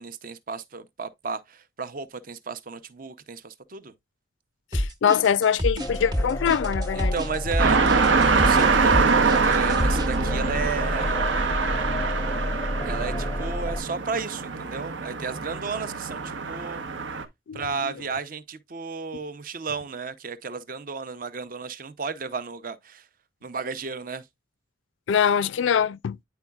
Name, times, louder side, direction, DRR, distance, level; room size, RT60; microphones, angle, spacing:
voice 1, 0.0-3.9 6.9-8.9 9.4-11.2 12.8-16.8 17.5-23.0 23.4-24.2, right 5 dB, 45° right, 0.6 m, -33 dB
voice 2, 4.7-7.1 17.5-17.9 25.1-26.2, left 7 dB, 80° left, 0.4 m, -23 dB
sound 1, 4.7-10.2, equal, 20° right, 1.0 m, -27 dB
sound 2, 5.8-13.8, left 1 dB, 15° left, 0.5 m, -31 dB
sound 3, 7.6-17.2, right 4 dB, 85° right, 0.9 m, -24 dB
9.5 x 4.6 x 2.3 m
head